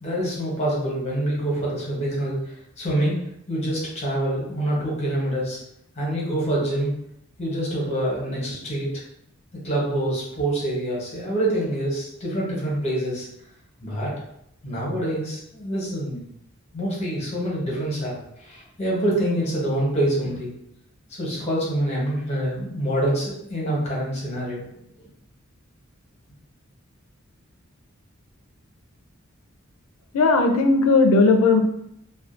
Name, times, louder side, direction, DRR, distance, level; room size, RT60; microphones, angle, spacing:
voice 1, 0.0-3.2 3.5-5.6 6.0-6.9 7.4-9.0 9.5-13.3 13.8-14.1 14.6-16.2 16.7-20.5 21.1-24.7 25.0-25.1, right 1 dB, 30° left, -5 dB, 0.9 m, -26 dB
voice 2, 30.1-31.6, left 3 dB, 85° left, 5 dB, 0.4 m, -17 dB
2.4 x 2.2 x 2.5 m, 0.76 s
head